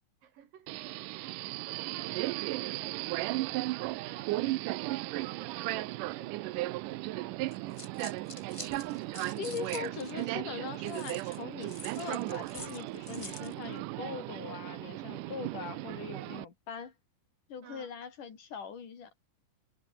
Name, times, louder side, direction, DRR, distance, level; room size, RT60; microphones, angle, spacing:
voice 1, 0.2-1.2 1.7-3.5 4.0-5.1 5.4-8.2 17.6-17.9, right 9 dB, 65° right, 3.7 m, -53 dB
Subway metro underground, 0.7-16.4, right 19 dB, 80° right, 1.9 m, -36 dB
sound 1, 7.5-10.3 10.8-13.5, left 2 dB, 20° left, 0.8 m, -47 dB
voice 2, 9.4-16.9 17.5-19.1, left 6 dB, 60° left, 4.5 m, -41 dB
omnidirectional pair, 4.3 m